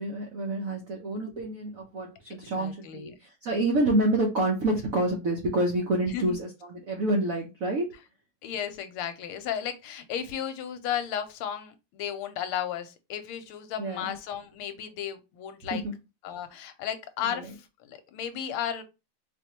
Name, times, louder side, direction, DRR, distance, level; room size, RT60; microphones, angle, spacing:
voice 1, 0.0-7.9 13.8-14.2 15.7-15.9 17.2-17.5, right 1 dB, 75° right, 0.7 m, -28 dB
voice 2, 2.3-3.1 6.0-6.4 8.4-15.8 16.2-18.8, left 9 dB, 85° left, 1.5 m, -34 dB
4.5 x 2.6 x 2.8 m
omnidirectional pair, 2.4 m